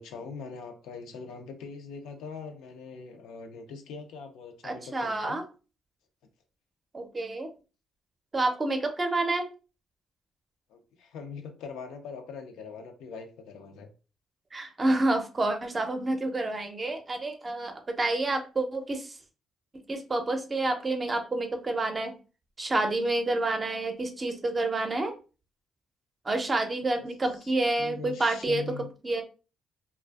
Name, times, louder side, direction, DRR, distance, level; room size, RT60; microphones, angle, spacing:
voice 1, 0.0-5.4 10.7-13.9 27.0-27.1 27.4-27.5 27.8-28.9, left 4 dB, 90° left, 5 dB, 0.5 m, -42 dB
voice 2, 4.6-5.4 6.9-7.5 8.3-9.5 14.5-19.2 19.9-22.1 22.6-25.1 26.2-28.6 29.0-29.2, right 2 dB, 30° right, 6 dB, 0.5 m, -28 dB
2.4 x 2.3 x 2.3 m, 0.34 s
cardioid pair, 90°, 0 cm